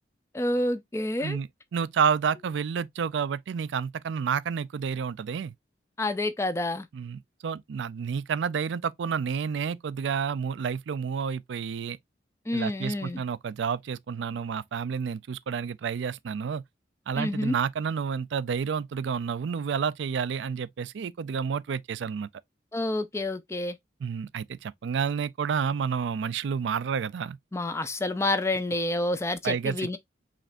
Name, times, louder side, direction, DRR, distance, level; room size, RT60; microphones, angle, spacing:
voice 1, 0.3-1.4 6.0-6.9 12.5-13.2 17.1-17.6 22.7-23.8 27.5-30.0, left 1 dB, 15° left, 0.4 m, -28 dB
voice 2, 1.7-5.5 6.9-12.0 12.5-16.6 17.1-22.3 24.0-27.4 29.4-30.0, right 6 dB, 75° right, 0.4 m, -30 dB
5.0 x 3.3 x 2.5 m
head